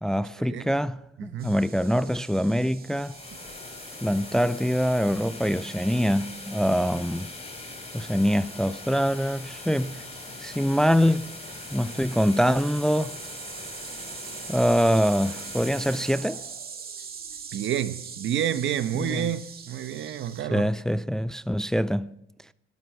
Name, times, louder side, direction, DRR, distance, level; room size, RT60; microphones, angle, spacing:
voice 1, 0.0-3.2 4.0-7.3 7.9-10.0 10.4-11.3 11.7-13.1 14.5-16.4 19.0-19.3 20.5-22.1, equal, 5° left, 0.5 m, -24 dB
voice 2, 1.2-1.6 17.5-20.7, right 10 dB, 70° right, 1.1 m, -29 dB
sound 1, 1.4-20.4, right 6 dB, 50° right, 2.3 m, -44 dB
sound 2, 2.8-17.6, left 3 dB, 30° left, 4.4 m, -42 dB
18.0 x 12.5 x 6.2 m
cardioid pair, 90°, 20 cm